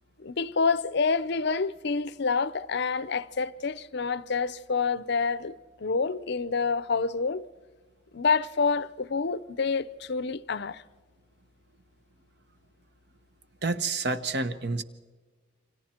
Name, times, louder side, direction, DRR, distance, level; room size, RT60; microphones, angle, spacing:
voice 1, 0.2-7.4 8.1-10.8, left 4 dB, 55° left, 0.6 m, -28 dB
voice 2, 13.6-14.8, right 3 dB, 55° right, 1.0 m, -29 dB
29.0 x 25.0 x 4.4 m
head